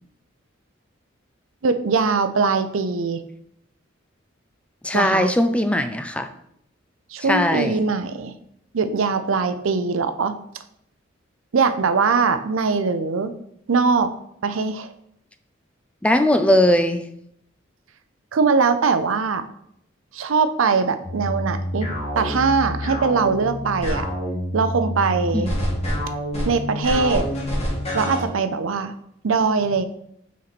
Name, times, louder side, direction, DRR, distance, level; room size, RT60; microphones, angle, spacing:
voice 1, 1.6-3.2 4.9-5.3 7.1-8.3 8.7-10.4 11.5-13.3 13.7-14.1 14.4-14.9 18.3-19.4 20.1-21.9 22.2-24.1 24.5-25.5 26.5-27.3 27.9-28.9 29.2-29.9, right 4 dB, 90° right, 11 dB, 0.6 m, -21 dB
voice 2, 4.8-6.3 7.3-7.8 16.0-17.0 25.3-25.5, left 1 dB, 5° left, 8 dB, 0.4 m, -19 dB
sound 1, 21.0-28.3, equal, 30° left, 1.7 m, -27 dB
6.1 x 4.3 x 4.1 m, 0.72 s
head